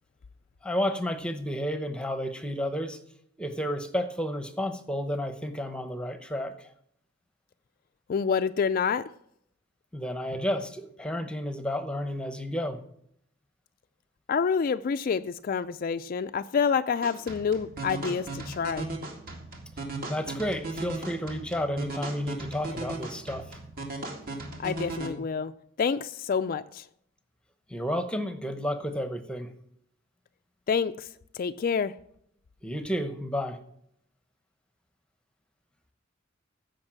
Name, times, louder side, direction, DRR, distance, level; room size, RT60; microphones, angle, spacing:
voice 1, 0.6-3.0 3.4-6.7 9.9-12.8 20.1-23.6 27.7-29.5 32.6-33.6, equal, 5° left, 0.9 m, -31 dB
voice 2, 8.1-9.1 14.3-18.9 24.6-25.5 25.8-26.8 30.7-31.1 31.3-31.9, left 6 dB, 45° left, 0.3 m, -27 dB
sound 1, 17.0-25.1, right 2 dB, 45° right, 2.2 m, -37 dB
15.0 x 5.3 x 7.4 m
head